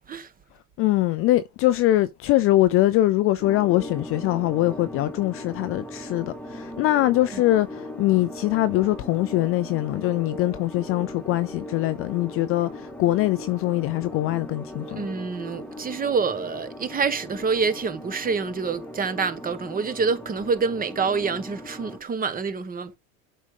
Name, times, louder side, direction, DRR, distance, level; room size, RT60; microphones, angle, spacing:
voice 1, 0.8-15.0, left 15 dB, 35° left, 0.4 m, -23 dB
sound 1, 3.4-22.0, left 1 dB, 5° left, 1.6 m, -39 dB
voice 2, 14.9-23.0, right 5 dB, 20° right, 1.1 m, -27 dB
8.1 x 5.0 x 3.7 m
supercardioid pair, 115°, 42 cm